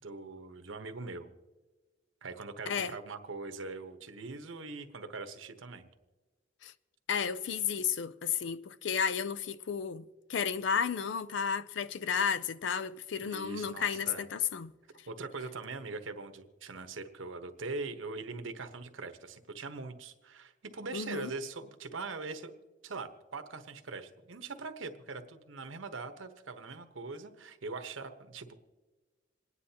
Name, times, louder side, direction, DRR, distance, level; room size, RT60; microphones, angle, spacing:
voice 1, 0.0-1.3 2.2-5.9 13.2-14.2 15.1-22.5 22.8-28.5, right 3 dB, 85° right, 1.1 m, -42 dB
voice 2, 7.1-14.7 20.9-21.3, left 7 dB, 65° left, 0.4 m, -33 dB
27.5 x 9.7 x 2.9 m
head